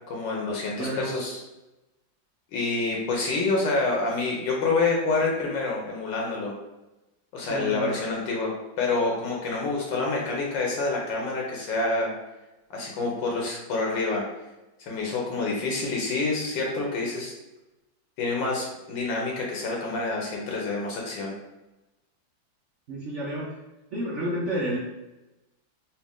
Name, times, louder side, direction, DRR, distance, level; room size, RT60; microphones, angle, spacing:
voice 1, 0.1-1.4 2.5-6.5 7.3-8.5 8.8-12.1 12.7-14.2 14.8-17.3 18.2-21.3, left 3 dB, 70° left, -2 dB, 1.4 m, -27 dB
voice 2, 0.7-1.1 7.5-8.0 22.9-23.6 23.9-24.8, right 1 dB, 75° right, -5 dB, 0.6 m, -30 dB
4.2 x 2.5 x 3.6 m, 0.99 s
omnidirectional pair, 2.1 m